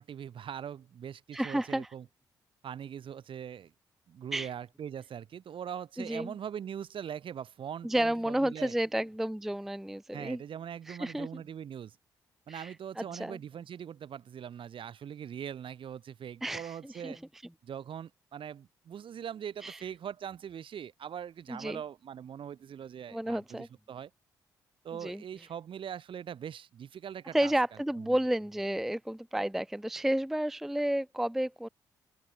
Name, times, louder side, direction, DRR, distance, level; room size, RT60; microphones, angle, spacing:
voice 1, 0.0-2.1 2.6-3.7 4.1-8.7 10.1-12.0 12.5-17.2 17.6-24.1 24.8-27.5 28.0-28.2, right 8 dB, 55° right, 2.3 m, -41 dB
voice 2, 1.3-1.9 4.3-4.5 6.0-6.3 7.8-10.4 10.9-11.4 12.5-13.4 16.4-17.2 19.6-19.8 21.5-21.8 23.1-23.7 25.0-25.2 27.3-31.7, right 1 dB, 5° right, 0.4 m, -31 dB
open air
hypercardioid pair, 40°, 10 cm